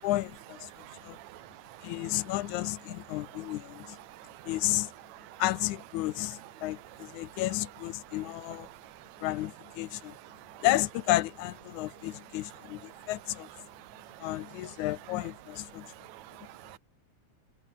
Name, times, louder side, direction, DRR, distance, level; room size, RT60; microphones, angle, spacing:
voice 1, 0.0-0.7 1.0-1.2 1.8-4.0 4.5-4.9 5.4-8.7 9.2-10.2 10.6-13.5 14.2-15.9, left 16 dB, 80° left, 2.1 m, -32 dB
voice 2, 0.8-1.8 4.1-4.5 5.1-5.4 10.5-10.6 12.9-13.1 13.9-14.3 16.0-16.8, right 16 dB, 80° right, 1.7 m, -49 dB
omnidirectional pair, 3.5 m